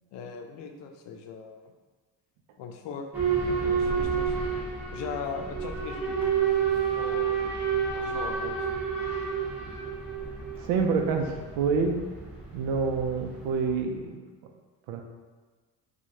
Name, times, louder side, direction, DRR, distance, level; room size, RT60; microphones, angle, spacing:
voice 1, 0.1-1.7 2.6-3.1 3.5-4.4 4.9-6.2 6.9-7.7 7.9-8.7, left 5 dB, 75° left, 4 dB, 0.6 m, -39 dB
Boat Water vehicle / Alarm, 3.1-13.8, right 6 dB, 5° right, 0.8 m, -30 dB
voice 2, 10.6-12.0 12.5-14.2 14.9-15.0, right 5 dB, 80° right, 4 dB, 0.6 m, -27 dB
4.6 x 2.4 x 2.7 m, 1.4 s
cardioid pair, 110°, 45 cm